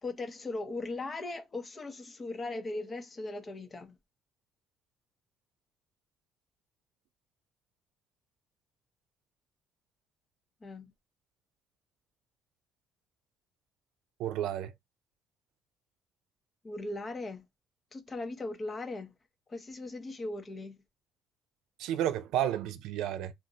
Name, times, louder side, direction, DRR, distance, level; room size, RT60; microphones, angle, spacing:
voice 1, 0.0-4.0 10.6-10.9 16.6-17.4 17.9-19.1 19.5-20.8, left 2 dB, 20° left, 0.6 m, -38 dB
voice 2, 14.2-14.7 21.8-23.3, right 11 dB, 80° right, 0.3 m, -31 dB
2.4 x 2.1 x 3.8 m
cardioid pair, 155°, 0 cm